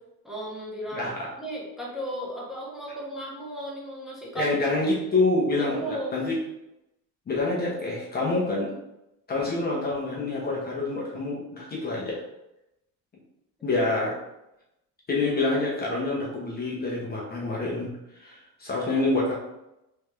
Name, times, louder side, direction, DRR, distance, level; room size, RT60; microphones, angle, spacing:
voice 1, 0.2-1.1 1.4-4.5 5.6-6.2, right 1 dB, ahead, -6 dB, 0.9 m, -35 dB
voice 2, 0.9-1.3 4.3-6.4 7.3-8.7 9.3-12.2 13.6-14.2 15.1-19.3, left 2 dB, 25° left, -4 dB, 0.9 m, -27 dB
3.4 x 3.3 x 3.4 m, 0.90 s
cardioid pair, 150°, 35 cm